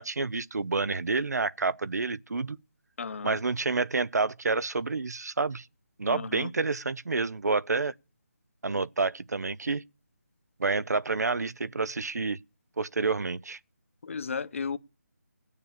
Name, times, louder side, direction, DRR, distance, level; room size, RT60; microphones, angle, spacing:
voice 1, 0.0-2.6 3.2-5.7 6.0-7.9 8.6-9.8 10.6-12.4 12.8-13.6, right 4 dB, 80° right, 0.7 m, -29 dB
voice 2, 3.0-3.4 6.1-6.5 14.0-14.8, left 5 dB, 50° left, 0.9 m, -34 dB
16.0 x 6.8 x 8.4 m
figure-of-eight pair, 165°, 9 cm